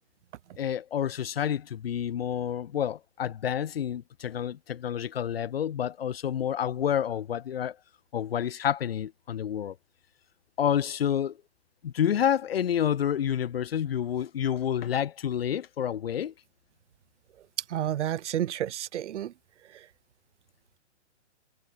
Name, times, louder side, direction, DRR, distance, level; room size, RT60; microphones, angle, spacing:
voice 1, 0.6-7.8 8.1-9.7 10.6-11.4 11.8-16.3, left 9 dB, 55° left, 1.7 m, -29 dB
voice 2, 17.7-19.3, right 11 dB, 80° right, 0.5 m, -30 dB
hypercardioid pair, 165°, 35 cm